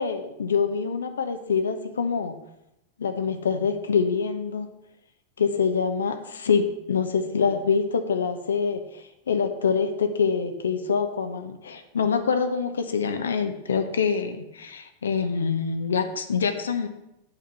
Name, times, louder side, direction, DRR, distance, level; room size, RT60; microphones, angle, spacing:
voice 1, 0.0-2.3 3.0-4.7 5.4-16.9, left 5 dB, 70° left, 7 dB, 0.9 m, -25 dB
8.1 x 5.2 x 7.0 m, 0.87 s
figure-of-eight pair, 90°, 0 cm